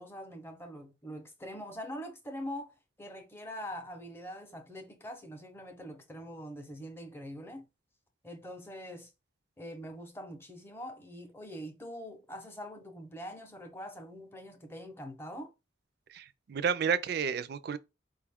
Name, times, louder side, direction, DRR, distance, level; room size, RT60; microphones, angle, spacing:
voice 1, 0.0-7.7 8.2-9.1 9.6-15.5, equal, 10° left, 0.6 m, -43 dB
voice 2, 16.1-17.8, right 7 dB, 55° right, 0.3 m, -31 dB
4.7 x 2.3 x 3.4 m
head